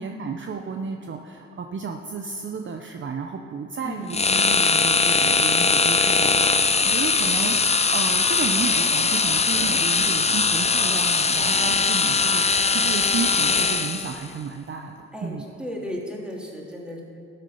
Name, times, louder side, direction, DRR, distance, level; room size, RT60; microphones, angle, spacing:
voice 1, 0.0-14.9 15.2-15.5, right 5 dB, 40° right, 4 dB, 0.8 m, -32 dB
voice 2, 3.8-4.4 15.1-17.0, left 1 dB, 5° right, -3 dB, 3.0 m, -35 dB
sound 1, 4.1-14.2, left 4 dB, 20° left, 0.6 m, -21 dB
12.0 x 7.6 x 5.7 m, 2.4 s
supercardioid pair, 60°, 31 cm